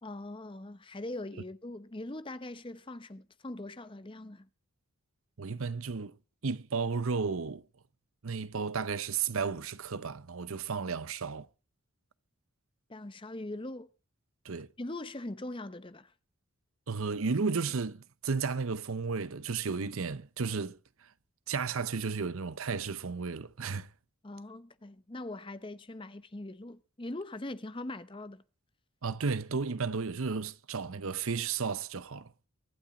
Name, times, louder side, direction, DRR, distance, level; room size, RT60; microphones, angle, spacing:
voice 1, 0.0-4.5 12.9-13.9 14.8-16.1 24.2-28.4, left 2 dB, 25° left, 0.7 m, -41 dB
voice 2, 5.4-6.1 6.4-7.6 8.2-11.5 14.4-14.7 16.9-21.1 21.5-23.9 29.0-32.3, right 5 dB, 70° right, 0.7 m, -33 dB
24.0 x 8.8 x 3.8 m
head